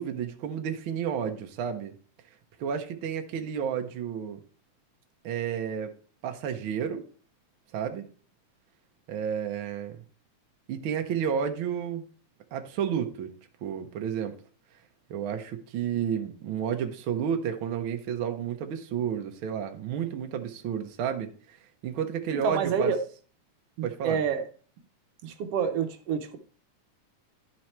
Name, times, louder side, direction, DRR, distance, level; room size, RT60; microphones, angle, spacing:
voice 1, 0.0-1.9 2.6-4.4 5.2-5.9 6.2-7.0 7.7-8.1 9.1-10.0 10.7-12.0 12.5-13.3 13.6-14.4 15.1-21.3 21.8-22.9 23.8-24.2, right 8 dB, 85° right, 5 dB, 1.1 m, -31 dB
voice 2, 22.4-23.0 24.0-24.4 25.2-26.4, right 6 dB, 70° right, 7 dB, 1.6 m, -27 dB
11.5 x 4.6 x 4.3 m, 0.40 s
omnidirectional pair, 3.5 m